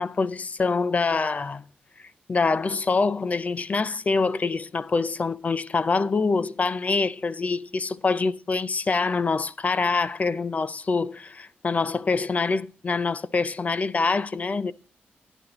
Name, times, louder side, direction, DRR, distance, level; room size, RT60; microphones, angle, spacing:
voice 1, 0.0-1.6 2.0-14.7, left 4 dB, 40° left, 0.4 m, -25 dB
11.5 x 9.9 x 2.9 m
cardioid pair, 60°, 4 cm